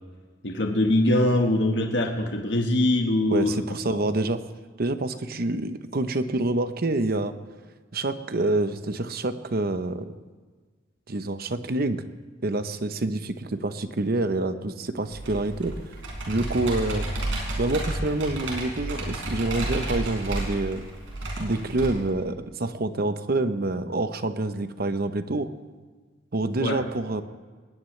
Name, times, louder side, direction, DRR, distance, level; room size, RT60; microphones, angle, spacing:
voice 1, 0.4-3.5 3.9-4.0 26.6-26.8, left 1 dB, 65° left, 2 dB, 1.5 m, -23 dB
voice 2, 3.3-4.4 4.8-7.3 7.9-10.2 11.1-12.0 12.4-15.7 16.3-17.1 17.6-20.8 21.4-25.5 26.3-27.2, right 2 dB, 55° right, 10 dB, 0.9 m, -27 dB
Computer keyboard, 15.1-21.9, right 1 dB, 85° right, 5.1 m, -31 dB
20.5 x 18.5 x 3.3 m, 1.4 s
head